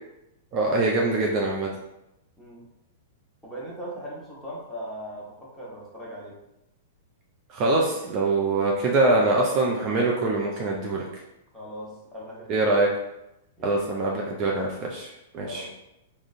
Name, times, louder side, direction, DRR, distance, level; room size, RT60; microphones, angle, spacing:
voice 1, 0.5-1.7 7.5-11.0 12.5-12.9 13.6-15.6, right 2 dB, 40° right, -1 dB, 0.5 m, -24 dB
voice 2, 2.4-2.7 3.4-6.4 11.5-12.7 13.6-13.9 15.4-15.7, equal, 5° left, -7 dB, 1.1 m, -39 dB
3.6 x 2.1 x 2.5 m, 0.88 s
figure-of-eight pair, 105°, 0 cm